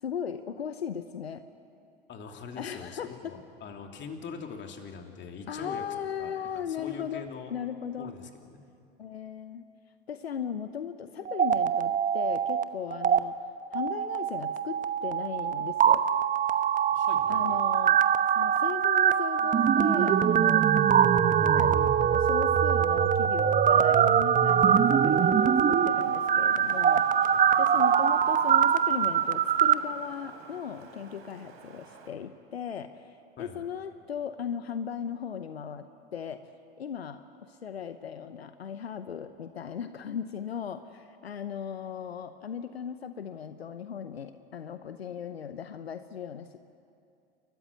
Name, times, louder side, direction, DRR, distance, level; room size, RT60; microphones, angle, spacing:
voice 1, 0.0-1.4 2.6-3.4 5.5-8.1 9.0-9.6 10.1-13.4 13.7-16.0 17.3-18.0 18.4-20.7 21.4-36.5 36.8-46.6, left 8 dB, 90° left, 10 dB, 0.9 m, -37 dB
voice 2, 2.1-5.8 6.2-7.5 8.0-8.6 16.9-17.6 33.4-33.6, left 5 dB, 35° left, 3 dB, 3.0 m, -43 dB
sound 1, 11.2-12.6 12.9-13.2 13.7-29.7, right 8 dB, 25° right, 0.9 m, -23 dB
Wind, 24.4-32.1, right 5 dB, 45° right, 3.9 m, -51 dB
29.0 x 14.0 x 9.8 m, 2.5 s
hypercardioid pair, 85°, 30 cm